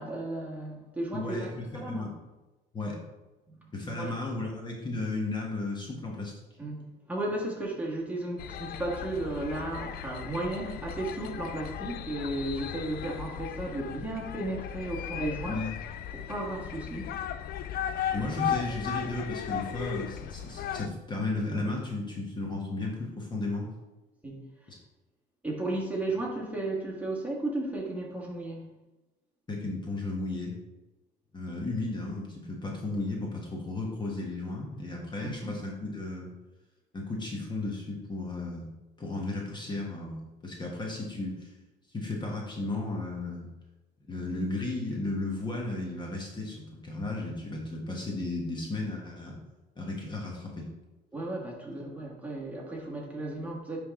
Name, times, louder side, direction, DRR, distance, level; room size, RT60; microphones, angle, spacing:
voice 1, 0.0-2.1 3.5-4.1 6.6-15.7 16.1-17.3 24.2-24.7 25.4-28.7 35.2-35.5 51.1-53.8, right 2 dB, 10° right, -3 dB, 1.6 m, -34 dB
voice 2, 1.1-2.1 2.7-3.0 3.7-6.3 15.4-15.7 18.1-23.7 24.7-24.8 29.5-30.5 31.3-36.3 36.9-38.7 39.0-41.5 41.9-43.5 44.1-49.4 49.8-50.7, left 2 dB, 25° left, -1 dB, 1.3 m, -34 dB
sound 1, 8.4-20.9, left 9 dB, 65° left, 0.4 m, -36 dB
9.4 x 3.5 x 3.7 m, 1.1 s
cardioid pair, 110°, 17 cm